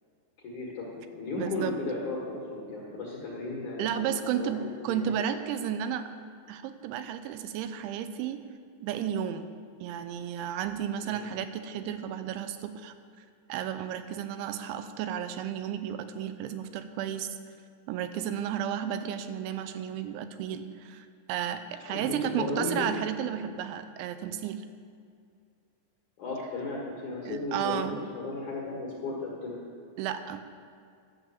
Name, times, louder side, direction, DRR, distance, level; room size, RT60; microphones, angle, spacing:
voice 1, 0.4-5.3 11.0-11.2 21.9-22.9 26.2-27.9 28.1-29.6, left 3 dB, 55° left, -4 dB, 2.3 m, -35 dB
voice 2, 1.4-1.7 3.8-6.1 6.5-8.4 8.8-9.5 9.8-12.9 13.5-17.3 17.9-24.7 27.3-28.0 30.0-30.4, right 9 dB, 85° right, 10 dB, 2.9 m, -33 dB
13.0 x 7.3 x 7.0 m, 2.3 s
omnidirectional pair, 5.4 m